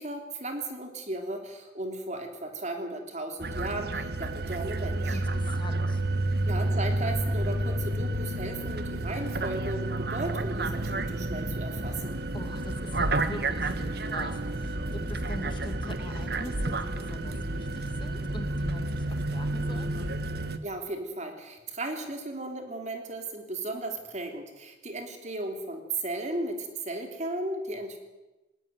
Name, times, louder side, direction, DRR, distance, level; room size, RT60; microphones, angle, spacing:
voice 1, 0.0-5.2 6.4-12.2 20.6-28.0, right 2 dB, 40° right, 5 dB, 3.4 m, -35 dB
sound 1, 3.4-20.6, right 2 dB, 55° right, 1.5 m, -30 dB
voice 2, 5.1-6.0 12.3-20.0, left 1 dB, 25° left, 6 dB, 2.0 m, -43 dB
19.5 x 18.5 x 9.4 m, 1.1 s
head